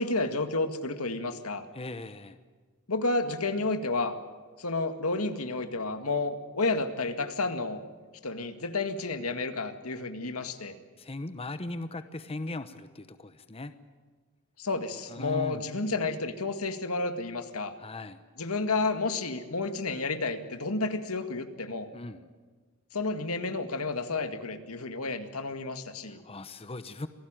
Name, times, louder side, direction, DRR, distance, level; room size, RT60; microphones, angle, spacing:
voice 1, 0.0-1.7 2.9-4.2 4.6-7.8 8.2-10.7 14.6-17.7 18.4-21.9 22.9-26.2, left 3 dB, 85° left, 8 dB, 2.0 m, -31 dB
voice 2, 1.7-2.4 11.0-13.7 15.1-15.7 17.8-18.2 21.9-22.2 26.0-27.1, left 2 dB, 25° left, 11 dB, 0.9 m, -39 dB
26.5 x 17.5 x 9.0 m, 1.4 s
head